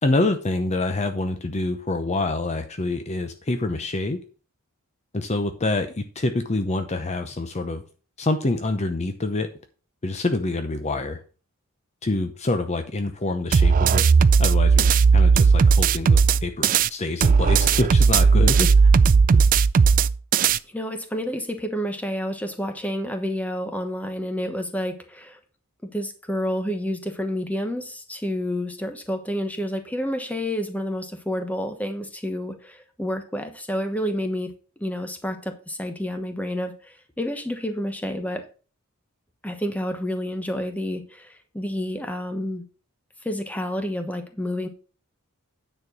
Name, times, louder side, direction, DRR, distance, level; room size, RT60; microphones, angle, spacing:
voice 1, 0.0-4.2 5.1-7.8 8.2-9.5 10.0-11.2 12.0-14.1 14.4-14.9 15.1-18.9 19.3-19.4, left 2 dB, 30° left, 7 dB, 0.7 m, -26 dB
sound 1, 13.5-16.9 17.2-20.6, right 5 dB, 40° right, 0.3 m, -16 dB
voice 2, 20.7-25.4 25.8-38.4 39.4-42.6 43.2-44.7, equal, 5° left, 7 dB, 1.1 m, -29 dB
9.6 x 4.4 x 6.0 m, 0.37 s
head